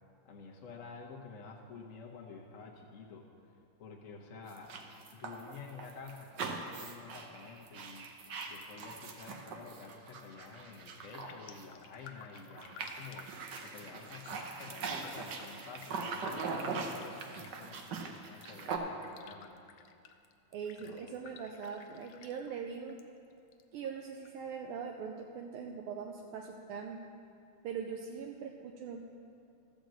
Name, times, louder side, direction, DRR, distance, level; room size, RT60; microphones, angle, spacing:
voice 1, 0.2-3.2 3.8-4.7 5.1-8.1 8.5-13.3 13.6-19.6 20.8-21.0, left 4 dB, 50° left, -1 dB, 1.0 m, -50 dB
sound 1, 4.5-12.1 12.3-18.8, right 4 dB, 60° right, 1.3 m, -41 dB
Raindrop, 10.6-10.7 11.0-23.0 23.3-24.3 24.7-24.8, left 7 dB, 70° left, 1.2 m, -56 dB
voice 2, 20.5-23.0 23.7-27.1 27.6-29.0, right 6 dB, 80° right, 2 dB, 1.5 m, -41 dB
13.0 x 5.1 x 7.6 m, 2.5 s
omnidirectional pair, 2.4 m